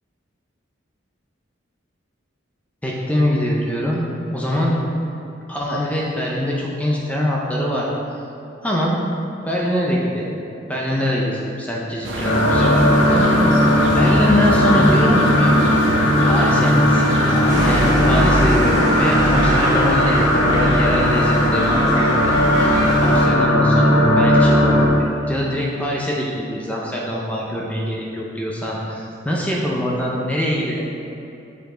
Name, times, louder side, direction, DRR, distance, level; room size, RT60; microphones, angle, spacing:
voice 1, 2.8-4.0 4.3-4.7 5.5-7.9 8.6-9.0 9.5-10.4 10.7-13.7 14.0-15.5 16.2-24.8 25.3-30.9, equal, 5° left, -4 dB, 0.5 m, -24 dB
sound 1, 12.0-17.9, right 1 dB, 75° right, 0.8 m, -26 dB
sound 2, 12.2-24.9, left 1 dB, 85° left, 1.0 m, -17 dB
sound 3, 17.5-23.3, equal, 15° right, 1.5 m, -22 dB
6.9 x 5.1 x 3.8 m, 2.9 s
head